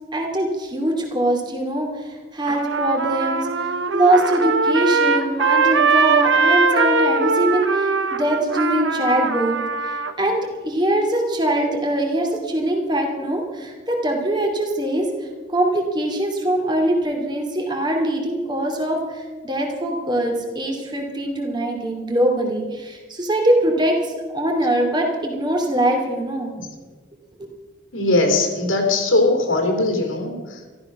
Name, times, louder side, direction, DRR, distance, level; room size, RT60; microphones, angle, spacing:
voice 1, 0.1-9.6 9.8-26.5 27.4-27.5, right 1 dB, 20° right, 1 dB, 2.6 m, -22 dB
Trumpet, 2.5-10.1, right 4 dB, 75° right, 1.0 m, -20 dB
voice 2, 27.9-30.6, left 2 dB, 90° left, 2 dB, 3.3 m, -20 dB
14.0 x 13.0 x 6.1 m, 1.3 s
head